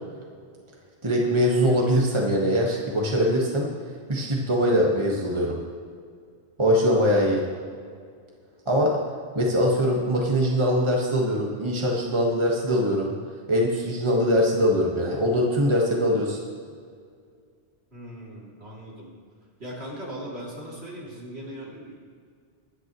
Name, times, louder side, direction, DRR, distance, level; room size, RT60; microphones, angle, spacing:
voice 1, 1.0-3.7 4.1-5.6 6.6-7.4 8.7-9.0 9.3-13.1 13.5-16.4, equal, 25° right, -2 dB, 1.6 m, -22 dB
voice 2, 17.9-19.1 19.6-21.9, equal, 70° right, -5 dB, 3.3 m, -38 dB
22.5 x 9.7 x 3.1 m, 2.1 s
omnidirectional pair, 1.1 m